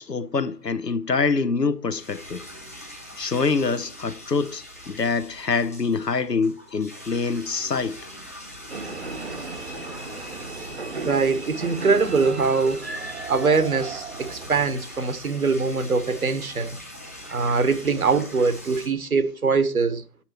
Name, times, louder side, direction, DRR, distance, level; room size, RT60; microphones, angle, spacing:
voice 1, 0.0-2.4 3.2-8.1, left 4 dB, 80° left, 1.1 m, -25 dB
sound 1, 1.9-18.9, left 1 dB, 10° left, 0.8 m, -42 dB
sound 2, 8.7-15.0, right 3 dB, 40° right, 1.0 m, -36 dB
voice 2, 11.0-12.9 13.3-16.8 17.3-20.0, right 4 dB, 60° right, 1.3 m, -22 dB
9.9 x 8.8 x 3.1 m
figure-of-eight pair, 150°, 48 cm